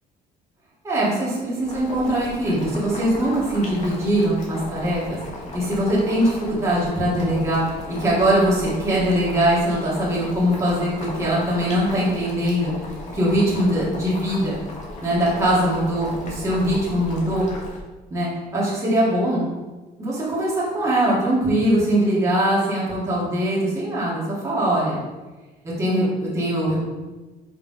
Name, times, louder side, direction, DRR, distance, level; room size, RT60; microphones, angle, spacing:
voice 1, 0.8-5.2 5.5-12.7 13.1-14.6 15.0-17.5 18.1-19.4 20.0-25.0 25.6-26.8, right 1 dB, 20° right, -8 dB, 1.9 m, -22 dB
Boiling, 1.6-17.8, left 1 dB, 45° left, 1.6 m, -36 dB
5.7 x 3.7 x 5.0 m, 1.2 s
cardioid pair, 140°, 17 cm